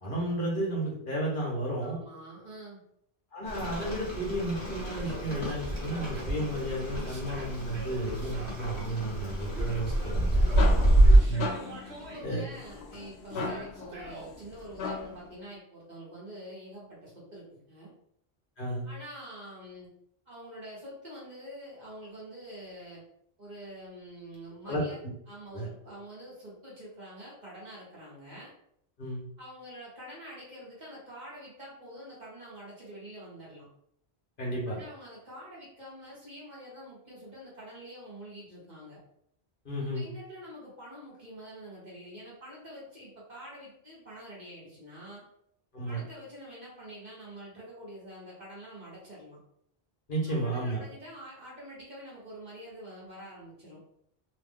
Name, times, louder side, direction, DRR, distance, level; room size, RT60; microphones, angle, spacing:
voice 1, 0.0-2.0 3.3-10.4 11.3-11.5 12.2-12.4 13.3-13.4 18.6-18.8 24.6-24.8 25.5-25.7 29.0-29.2 34.4-34.8 39.6-40.1 45.7-46.0 50.1-50.8, right 1 dB, 55° left, -4 dB, 1.2 m, -32 dB
voice 2, 1.8-2.8 10.5-11.1 12.0-17.9 18.8-19.9 20.2-23.0 23.4-25.0 25.3-28.5 29.4-33.7 34.7-39.0 39.9-45.2 45.8-49.4 50.3-53.8, equal, 45° right, -7 dB, 1.4 m, -46 dB
Rain, 3.5-11.2, right 1 dB, 30° left, 1.2 m, -26 dB
Yell, 4.9-6.2 7.0-8.8 9.5-10.7 11.0-12.3 13.3-14.3, right 2 dB, 80° right, 1.1 m, -46 dB
sound 1, 10.2-15.3, left 4 dB, 85° left, 0.8 m, -38 dB
3.0 x 2.4 x 3.5 m, 0.71 s
omnidirectional pair, 1.1 m